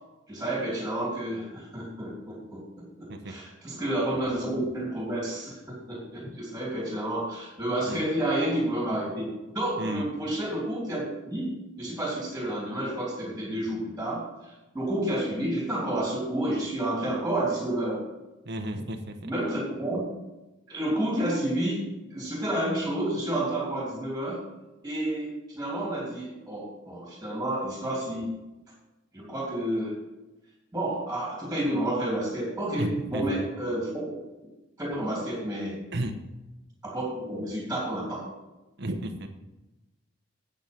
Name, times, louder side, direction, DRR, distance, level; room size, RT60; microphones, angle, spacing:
voice 1, 0.3-9.3 9.5-18.0 19.2-20.0 20.7-21.8 22.1-24.4 24.8-28.3 29.1-30.0 30.7-34.2 34.8-35.8 36.8-38.3, right 1 dB, 10° right, -4 dB, 3.0 m, -30 dB
voice 2, 9.8-10.1 18.4-19.2 32.8-33.4 35.9-36.1 38.8-39.3, right 1 dB, 55° right, 5 dB, 1.0 m, -32 dB
9.1 x 9.0 x 5.3 m, 1.0 s
head